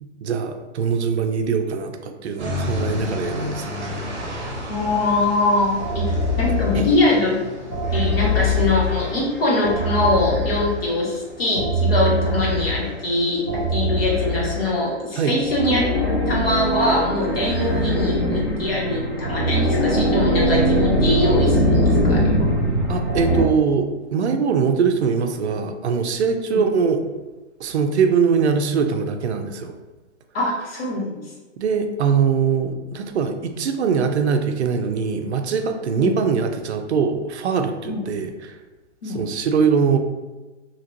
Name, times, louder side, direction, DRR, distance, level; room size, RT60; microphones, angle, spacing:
voice 1, 0.0-3.9 6.7-6.9 15.2-15.4 22.9-27.0 27.6-29.7 31.6-38.6 39.0-40.0, right 6 dB, 65° right, 6 dB, 0.5 m, -22 dB
sound 1, 2.4-13.9, left 1 dB, 40° right, 0.8 m, -33 dB
voice 2, 4.7-6.1 6.4-7.4 7.9-22.5 26.5-26.6 30.3-31.3 35.9-36.1 37.9-38.0 39.0-39.2, left 2 dB, 55° left, -4 dB, 1.0 m, -22 dB
sound 2, 5.8-7.1 7.7-11.0 11.5-13.0 13.5-14.9 15.4-23.4, equal, 20° left, 0.6 m, -22 dB
2.9 x 2.8 x 2.6 m, 1.2 s
hypercardioid pair, 180°, 36 cm